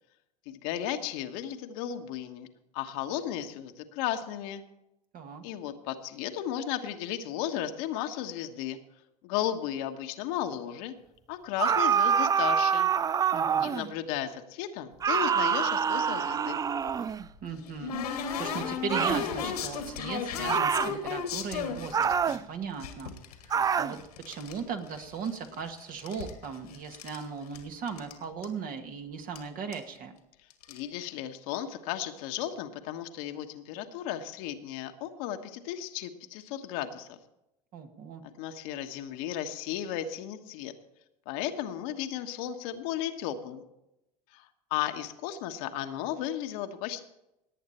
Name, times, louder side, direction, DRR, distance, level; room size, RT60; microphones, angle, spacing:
voice 1, 0.4-2.5 2.7-4.6 5.4-8.8 9.2-10.9 11.3-12.9 13.6-16.6 30.7-37.2 38.4-40.7 41.2-43.7 44.3-47.0, left 11 dB, 65° left, 6 dB, 1.3 m, -34 dB
voice 2, 5.1-5.4 13.3-13.8 17.4-23.2 23.4-24.0 24.3-30.1 37.7-38.2, right 6 dB, 45° right, 5 dB, 2.0 m, -38 dB
sound 1, 11.6-13.9 15.0-17.3 18.9-19.3 20.5-21.0 21.9-22.4 23.5-24.0, right 7 dB, 20° right, 0.3 m, -26 dB
sound 2, 16.9-22.4 22.8-24.6 24.9-25.6 25.9-27.2 27.5-27.6 27.9-28.1 28.4-28.5 29.4-29.5 29.7-30.0 30.5-30.8, left 6 dB, 80° left, 2.0 m, -35 dB
18.5 x 8.6 x 4.4 m, 0.87 s
hypercardioid pair, 80°, 20 cm